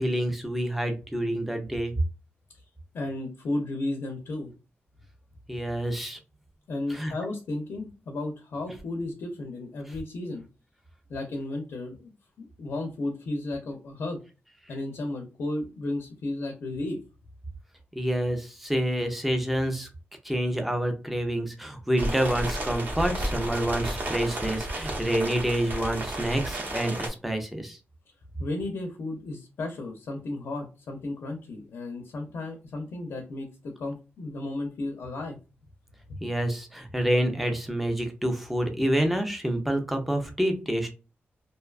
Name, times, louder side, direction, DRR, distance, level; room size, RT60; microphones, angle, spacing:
voice 1, 0.0-1.9 5.5-6.2 6.9-7.1 17.9-19.9 20.2-27.8 36.2-40.9, right 1 dB, 5° right, 5 dB, 0.4 m, -28 dB
voice 2, 2.9-4.5 6.7-10.4 11.1-12.1 12.4-14.2 14.7-17.0 28.4-35.4 36.1-36.2, left 2 dB, 70° left, 3 dB, 0.5 m, -34 dB
sound 1, 22.0-27.1, right 1 dB, 45° right, 0.8 m, -32 dB
2.6 x 2.2 x 2.3 m, 0.31 s
wide cardioid pair, 165°, 4 cm